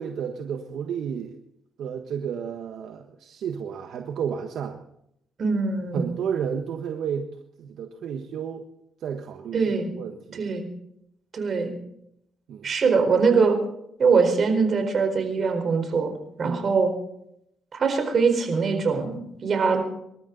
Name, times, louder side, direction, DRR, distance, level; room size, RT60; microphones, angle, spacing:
voice 1, 0.0-1.4 1.8-4.8 5.9-7.3 7.6-8.7 9.0-9.6 9.9-10.5 12.5-12.7 16.4-16.7, right 7 dB, 75° right, 5 dB, 1.4 m, -32 dB
voice 2, 5.4-6.2 9.5-9.9 10.3-10.7 11.3-11.7 12.6-13.6 14.0-16.1 16.4-16.9 17.7-19.8, right 5 dB, 50° right, 5 dB, 4.4 m, -22 dB
26.5 x 13.0 x 4.1 m, 0.76 s
cardioid pair, 90°, 0 cm